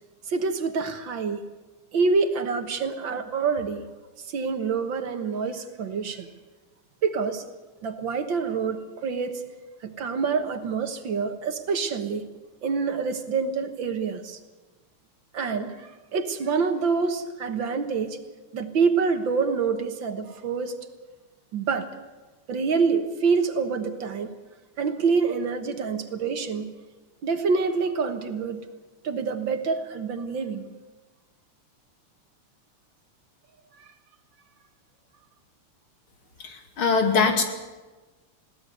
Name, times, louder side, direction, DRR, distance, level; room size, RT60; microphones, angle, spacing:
voice 1, 0.3-1.4 1.9-3.8 4.3-6.3 7.0-7.4 7.8-9.4 9.8-12.3 12.6-14.4 15.3-18.2 18.5-20.7 21.5-21.9 22.5-24.3 24.8-26.7 27.2-28.6 29.0-30.7, right 5 dB, 60° right, 8 dB, 2.0 m, -26 dB
voice 2, 36.4-37.4, left 5 dB, 70° left, 4 dB, 3.2 m, -22 dB
21.5 x 17.0 x 8.1 m, 1.2 s
omnidirectional pair, 2.4 m